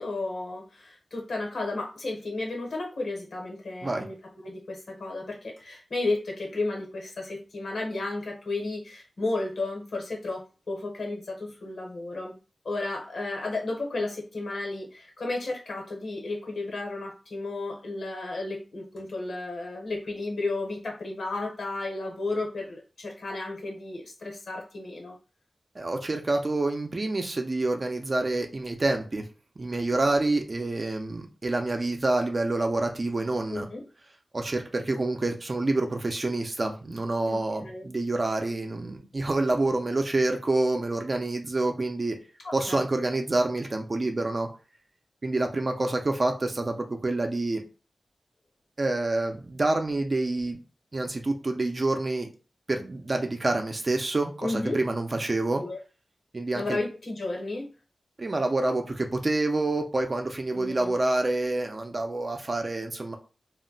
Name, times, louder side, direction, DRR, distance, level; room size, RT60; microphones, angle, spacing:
voice 1, 0.0-12.3 12.6-25.1 33.5-33.8 37.3-37.8 42.4-42.8 54.4-54.8 55.6-55.8 56.5-57.7 60.5-60.9, left 2 dB, 80° left, 0 dB, 0.9 m, -33 dB
voice 2, 25.8-29.2 29.6-33.7 34.3-42.2 42.5-44.5 45.2-47.6 48.8-50.6 50.9-52.3 52.7-55.6 56.3-56.8 58.2-63.2, right 2 dB, 45° right, 3 dB, 0.5 m, -27 dB
2.1 x 2.1 x 3.8 m, 0.35 s
wide cardioid pair, 65°, 0 cm